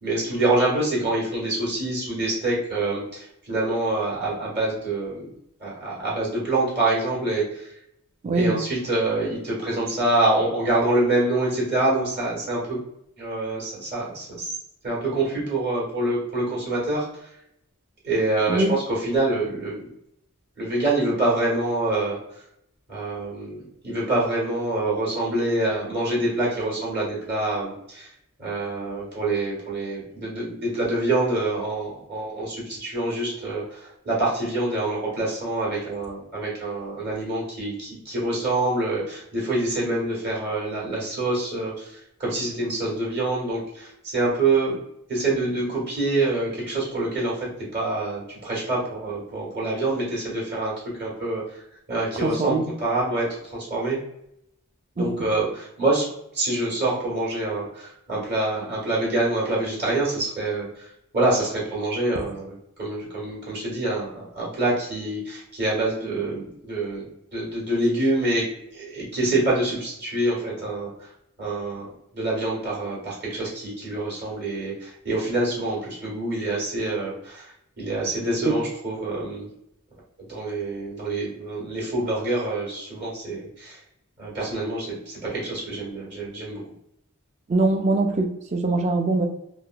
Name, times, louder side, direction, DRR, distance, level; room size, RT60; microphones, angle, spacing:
voice 1, 0.0-5.3 5.6-7.7 8.3-12.8 13.2-14.5 14.8-17.3 18.0-19.9 20.6-22.2 22.9-28.1 28.4-44.8 45.1-47.5 47.7-50.7 51.0-51.6 51.9-54.0 54.9-56.1 56.3-68.5 68.7-71.1 71.4-71.9 72.1-79.5 80.3-83.8 84.2-86.6, right 2 dB, 45° right, -5 dB, 1.5 m, -26 dB
voice 2, 8.2-8.6 18.5-18.7 52.1-52.7 55.0-55.3 78.4-78.6 87.5-89.3, right 2 dB, 30° right, 4 dB, 0.3 m, -22 dB
3.4 x 2.6 x 2.3 m, 0.78 s
head